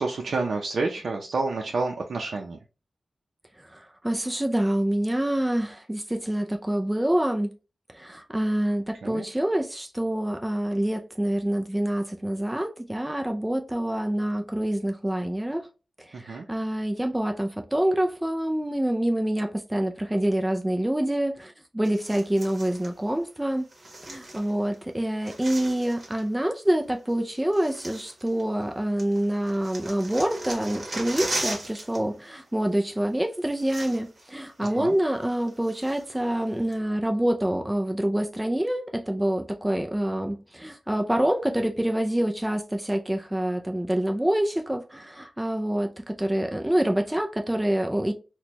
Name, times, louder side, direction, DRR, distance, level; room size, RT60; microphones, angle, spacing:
voice 1, 0.0-2.6 9.0-9.3 16.1-16.5 34.6-35.0, right 3 dB, 70° right, 0.5 m, -29 dB
voice 2, 3.7-7.5 7.9-15.7 16.1-23.7 24.1-48.1, right 1 dB, 10° right, 0.4 m, -26 dB
sound 1, 21.8-22.9 23.7-24.8 25.0-26.3 27.1-27.2 27.5-28.7 29.0-32.0 32.3-32.5 33.2-33.3 33.5-34.3 34.6-34.7 35.2-36.2 36.7-36.8, right 1 dB, 45° right, 1.2 m, -37 dB
4.2 x 2.2 x 2.9 m
wide cardioid pair, 105°, 0 cm